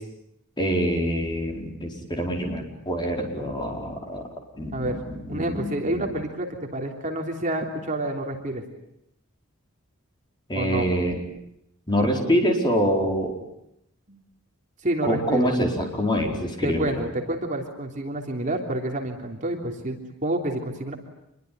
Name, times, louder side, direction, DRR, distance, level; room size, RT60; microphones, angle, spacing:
voice 1, 0.6-4.3 4.6-6.1 10.5-11.2 11.9-13.3 15.0-17.0, equal, 20° left, 2 dB, 4.8 m, -25 dB
voice 2, 5.3-8.6 10.5-10.9 14.1-14.2 14.8-15.5 16.6-20.9, right 1 dB, 35° right, 2 dB, 3.3 m, -28 dB
27.5 x 22.5 x 9.5 m, 0.80 s
head